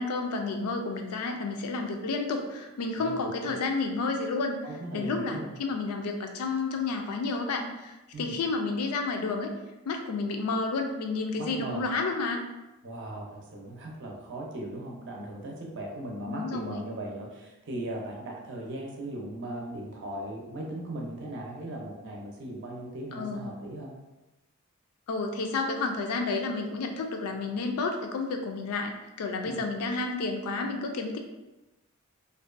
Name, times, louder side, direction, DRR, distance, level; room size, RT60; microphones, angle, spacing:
voice 1, 0.0-4.6 4.9-9.5 9.9-12.4 16.3-16.8 23.1-23.5 25.1-28.9 29.2-31.2, left 3 dB, 90° left, 4 dB, 0.4 m, -31 dB
voice 2, 4.6-5.5 8.1-8.3 11.4-11.8 12.8-23.9 29.4-29.6, right 1 dB, 55° right, -1 dB, 0.5 m, -38 dB
2.5 x 2.2 x 2.4 m, 1.0 s
head